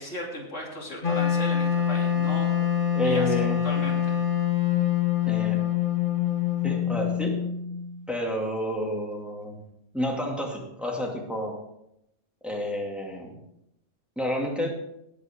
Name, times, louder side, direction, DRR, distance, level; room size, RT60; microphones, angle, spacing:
voice 1, 0.0-2.5 3.0-3.4 3.6-4.2, left 1 dB, 80° left, -2 dB, 3.3 m, -36 dB
Wind instrument woodwind instrument, 1.0-8.0, left 9 dB, 45° left, 1.9 m, -25 dB
voice 2, 2.9-3.6 5.2-5.6 6.6-7.3 8.1-9.6 9.9-11.6 12.4-13.4 14.2-14.8, equal, ahead, -1 dB, 2.3 m, -30 dB
19.0 x 8.3 x 3.7 m, 0.81 s
omnidirectional pair, 1.2 m